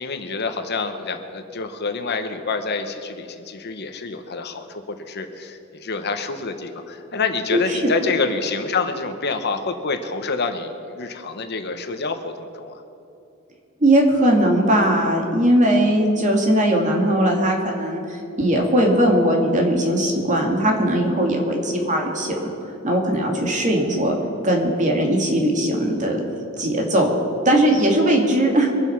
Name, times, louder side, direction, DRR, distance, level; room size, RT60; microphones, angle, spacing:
voice 1, 0.0-12.8, left 4 dB, 50° left, 7 dB, 1.0 m, -27 dB
voice 2, 7.5-7.9 13.8-22.5 22.8-24.2 24.4-26.2 26.6-27.1 27.5-28.7, right 1 dB, 35° right, 1 dB, 2.3 m, -19 dB
23.5 x 7.9 x 5.9 m, 2.7 s
head